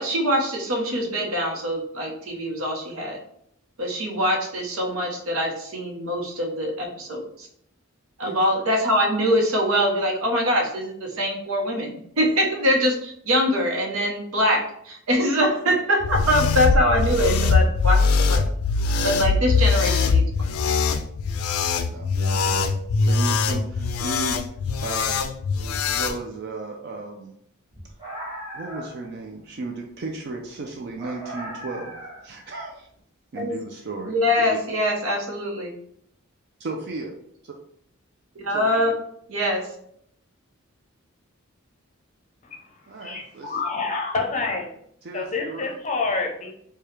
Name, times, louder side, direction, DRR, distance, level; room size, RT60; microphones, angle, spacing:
voice 1, 0.0-3.2 3.8-7.5 8.2-18.4 19.0-20.5 33.4-33.5 34.1-35.7 38.4-38.9 39.3-39.7, equal, 80° right, 1 dB, 0.9 m, -23 dB
sound 1, 16.0-26.2, left 4 dB, 85° left, 0.4 m, -22 dB
voice 2, 21.9-22.7 23.1-24.4 24.8-25.3 25.5-27.3 28.5-31.9 32.2-32.9 33.3-34.6 36.6-37.1 38.5-39.0 42.9-43.6 45.0-45.8, right 3 dB, 50° right, 1 dB, 0.4 m, -35 dB
sound 2, 27.7-29.1 31.0-32.4, right 1 dB, 25° right, 1.3 m, -37 dB
voice 3, 43.0-44.7 45.1-46.5, left 3 dB, 35° left, 2 dB, 0.6 m, -27 dB
4.7 x 2.3 x 3.2 m, 0.69 s
head